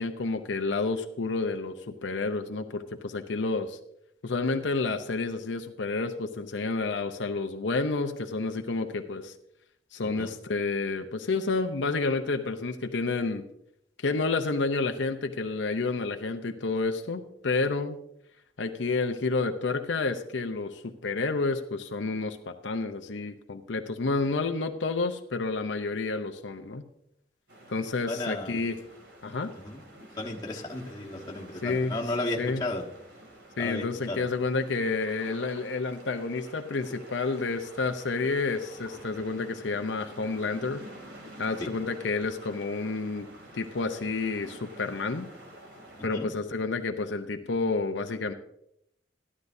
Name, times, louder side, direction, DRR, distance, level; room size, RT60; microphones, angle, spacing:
voice 1, 0.0-3.8 4.2-9.3 9.9-13.4 14.0-18.0 18.6-26.9 27.7-28.8 29.2-29.5 31.6-32.0 32.4-32.6 33.6-40.9 41.4-43.3 43.5-45.3 46.0-48.3, left 3 dB, 75° left, 6 dB, 0.7 m, -30 dB
voice 2, 10.0-10.3 28.1-28.6 29.6-29.8 30.2-32.8 33.6-34.2 41.6-41.7 46.1-46.3, left 2 dB, 20° left, -2 dB, 1.3 m, -34 dB
sound 1, 27.5-46.1, right 1 dB, 70° right, 2.7 m, -49 dB
13.5 x 11.5 x 2.7 m, 0.76 s
head